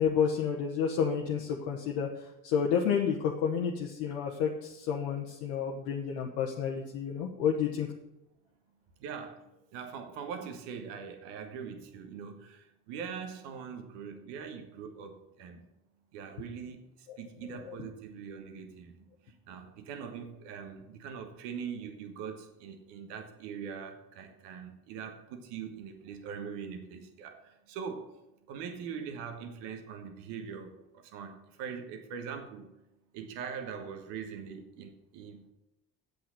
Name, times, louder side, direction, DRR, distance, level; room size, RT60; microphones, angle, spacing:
voice 1, 0.0-2.1 2.4-7.9, left 7 dB, 80° left, 0 dB, 1.1 m, -30 dB
voice 2, 9.0-15.6 16.1-28.1 28.5-32.7 33.1-35.5, right 6 dB, 80° right, 6 dB, 1.4 m, -42 dB
8.0 x 6.8 x 8.3 m, 0.91 s
hypercardioid pair, 45°, 42 cm